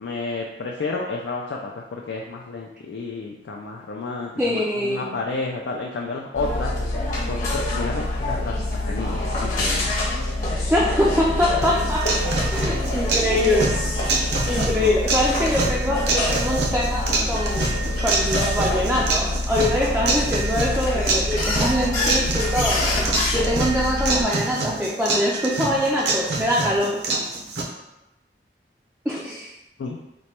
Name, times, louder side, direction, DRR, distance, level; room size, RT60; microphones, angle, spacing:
voice 1, 0.0-6.7 7.2-9.9 14.8-15.0 29.8-30.0, left 3 dB, 80° left, -1 dB, 0.3 m, -31 dB
voice 2, 4.4-5.2 10.7-17.7 18.0-22.8 23.3-27.0 29.1-29.5, left 1 dB, 5° right, -5 dB, 0.3 m, -24 dB
sound 1, 6.3-24.2, left 2 dB, 45° left, 1.0 m, -25 dB
sound 2, 11.6-27.6, right 3 dB, 70° right, 0.6 m, -26 dB
3.0 x 2.2 x 4.2 m, 0.95 s
head